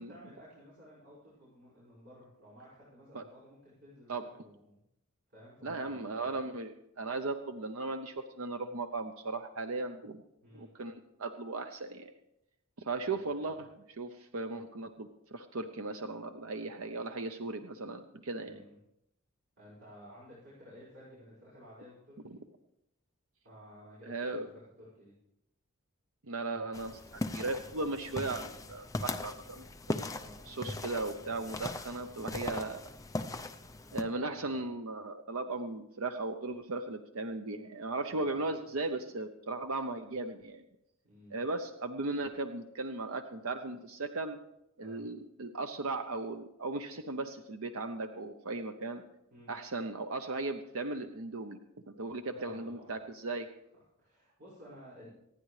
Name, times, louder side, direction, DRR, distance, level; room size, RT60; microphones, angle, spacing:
voice 1, 0.0-4.8 5.3-6.3 10.4-10.7 13.1-13.5 18.4-18.8 19.6-22.4 23.4-25.1 30.1-30.4 34.2-34.7 38.1-38.4 41.0-41.4 44.8-45.0 49.3-49.5 52.3-53.0 53.7-55.1, equal, 50° right, -11 dB, 5.5 m, -54 dB
voice 2, 5.6-10.2 10.5-12.1 12.8-18.6 22.2-22.4 24.0-24.5 26.3-29.6 30.5-32.9 33.9-40.6 41.3-44.4 44.8-49.0 49.5-51.6 51.9-53.5, right 3 dB, 70° right, 6 dB, 0.8 m, -37 dB
sound 1, 26.7-34.0, left 2 dB, 15° left, 0.6 m, -39 dB
26.0 x 10.0 x 3.3 m, 0.83 s
head